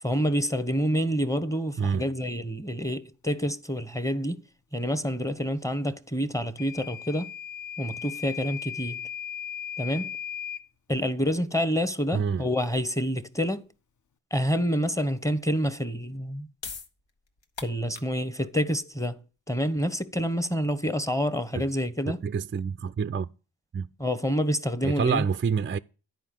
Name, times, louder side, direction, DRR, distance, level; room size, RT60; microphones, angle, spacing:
voice 1, 0.0-4.4 4.7-7.3 7.8-9.0 9.8-10.1 10.9-13.7 14.3-16.5 17.6-22.2 24.0-25.2, equal, 5° left, 1.0 m, -28 dB
Microwave oven / Alarm, 6.6-10.7, left 8 dB, 40° left, 0.7 m, -37 dB
voice 2, 12.1-12.5 21.6-21.7 22.1-23.3 23.7-23.9 24.8-25.8, right 6 dB, 25° right, 0.4 m, -27 dB
sound 1, 16.2-22.9, left 5 dB, 70° left, 1.4 m, -46 dB
10.5 x 4.7 x 7.6 m
cardioid pair, 45°, 46 cm